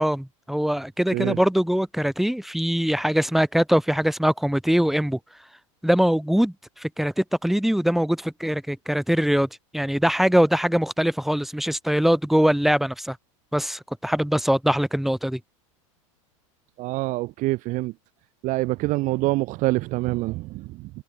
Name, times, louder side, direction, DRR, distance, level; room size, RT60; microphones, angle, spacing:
voice 1, 0.0-5.2 5.8-13.2 13.5-15.4, equal, ahead, 5.5 m, -22 dB
voice 2, 16.8-17.9 18.4-20.9, right 20 dB, 50° right, 5.3 m, -26 dB
hypercardioid pair, 100°, 17 cm